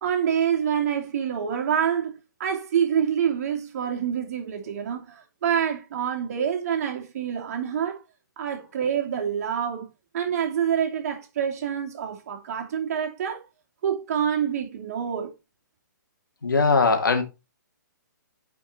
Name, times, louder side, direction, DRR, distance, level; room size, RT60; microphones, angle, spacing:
voice 1, 0.0-8.0 8.4-9.9 10.1-13.4 13.8-15.3, right 8 dB, 50° right, 2.7 m, -26 dB
voice 2, 16.4-17.2, left 4 dB, 85° left, 2.4 m, -20 dB
9.7 x 5.0 x 4.4 m
hypercardioid pair, 140°, 11 cm